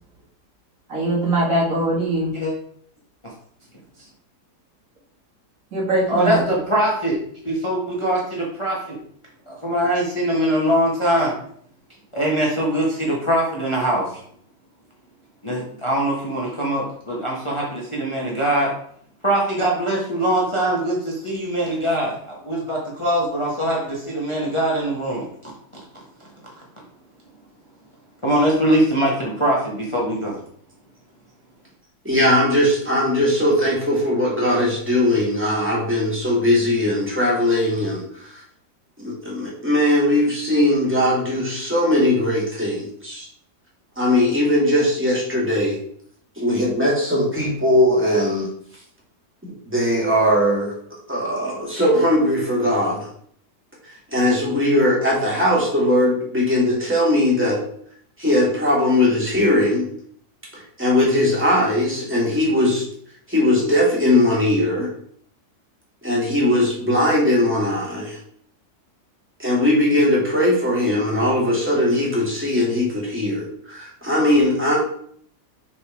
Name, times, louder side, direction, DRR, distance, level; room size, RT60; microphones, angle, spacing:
voice 1, 0.9-2.4 5.7-6.4, right 1 dB, 55° right, -5 dB, 2.5 m, -21 dB
voice 2, 6.1-7.2 7.4-9.0 9.5-11.3 12.1-14.2 15.4-18.7 19.2-25.5 28.2-30.3, right 1 dB, 20° left, -3 dB, 1.4 m, -22 dB
voice 3, 32.0-38.4 39.0-43.3 44.0-45.8 46.4-48.5 49.4-50.7 51.1-53.1 54.1-57.6 58.2-59.9 60.5-62.9 63.3-64.9 66.0-68.2 69.4-74.8, left 1 dB, 5° right, -5 dB, 2.5 m, -19 dB
6.9 x 4.3 x 4.7 m, 0.63 s
omnidirectional pair, 1.7 m